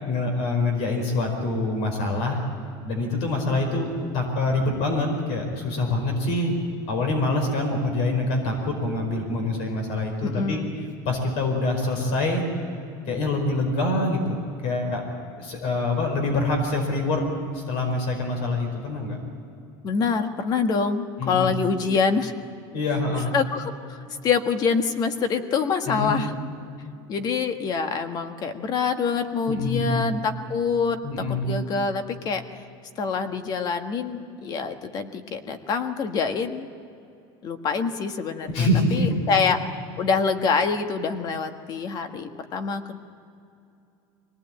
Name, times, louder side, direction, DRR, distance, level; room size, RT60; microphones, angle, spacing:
voice 1, 0.0-2.4 2.8-6.6 6.9-10.6 11.0-12.4 13.1-15.0 15.4-17.2 17.5-19.2 21.2-21.5 22.7-23.3 25.9-26.1 29.5-30.1 31.0-31.5 38.5-39.2, left 2 dB, 60° left, 3 dB, 4.9 m, -25 dB
voice 2, 10.2-10.7 19.8-22.3 23.3-26.3 27.1-31.0 31.4-32.4 33.0-36.7 37.4-39.6 40.0-43.0, left 5 dB, 35° left, 7 dB, 1.5 m, -25 dB
24.0 x 19.0 x 8.9 m, 2.6 s
supercardioid pair, 150°, 11 cm